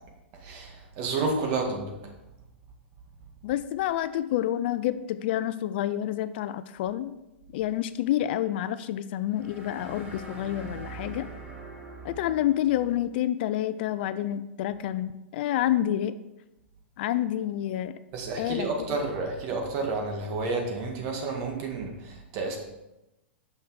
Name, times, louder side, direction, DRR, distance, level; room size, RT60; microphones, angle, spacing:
voice 1, 0.4-1.9 18.1-22.6, right 3 dB, 45° right, 2 dB, 1.8 m, -30 dB
voice 2, 3.4-7.2 7.5-11.3 12.0-16.1 17.0-17.9 18.4-19.0, left 12 dB, 55° left, 13 dB, 0.4 m, -28 dB
sound 1, 9.3-13.0, right 2 dB, 20° right, 2.1 m, -43 dB
6.4 x 5.6 x 4.6 m, 0.94 s
hypercardioid pair, 115°, 7 cm